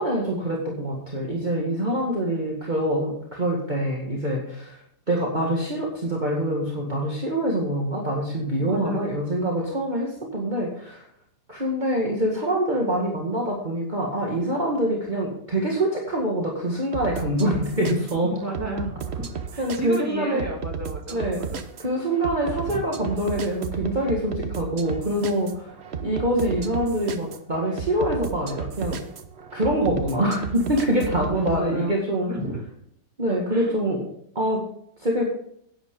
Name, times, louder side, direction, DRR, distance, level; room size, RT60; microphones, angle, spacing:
voice 1, 0.0-4.8 5.1-11.0 11.5-18.3 19.6-20.4 21.1-21.4 21.8-25.7 26.0-29.0 29.5-32.3 33.2-34.0 34.4-34.6 35.0-35.3, right 1 dB, 30° right, -2 dB, 2.1 m, -25 dB
voice 2, 8.6-9.1 18.2-19.3 19.5-21.6 30.9-32.0 32.3-32.6 33.5-33.8, equal, 10° right, -1 dB, 2.7 m, -33 dB
sound 1, 16.9-31.6, right 7 dB, 50° right, 1.0 m, -34 dB
11.0 x 9.7 x 3.8 m, 0.67 s
omnidirectional pair, 1.7 m